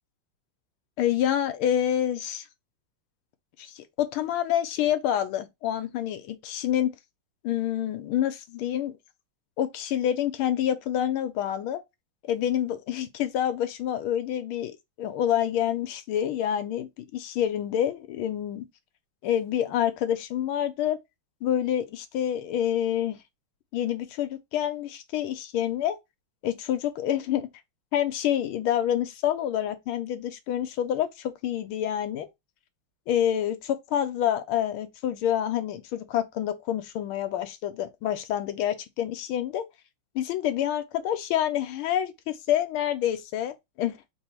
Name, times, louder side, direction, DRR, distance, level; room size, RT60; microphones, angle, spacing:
voice 1, 1.0-2.4 3.6-6.9 7.4-8.9 9.6-11.8 12.3-14.7 15.0-18.6 19.2-21.0 21.4-23.2 23.7-26.0 26.4-27.5 27.9-32.3 33.1-39.6 40.1-44.1, left 10 dB, 80° left, 1.5 m, -27 dB
3.7 x 2.7 x 4.3 m
omnidirectional pair, 2.3 m